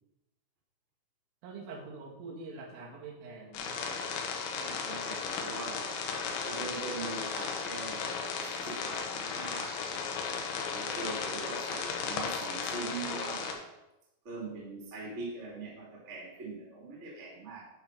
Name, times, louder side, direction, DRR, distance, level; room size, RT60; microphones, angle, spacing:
voice 1, 1.4-3.8, right 3 dB, 90° right, -2 dB, 4.4 m, -45 dB
sound 1, 3.5-13.5, left 5 dB, 85° left, 3.5 m, -35 dB
voice 2, 4.5-6.0 6.4-9.8 10.7-13.6 14.2-17.6, right 3 dB, 25° right, -3 dB, 1.4 m, -42 dB
10.5 x 4.7 x 5.9 m, 0.93 s
omnidirectional pair, 5.5 m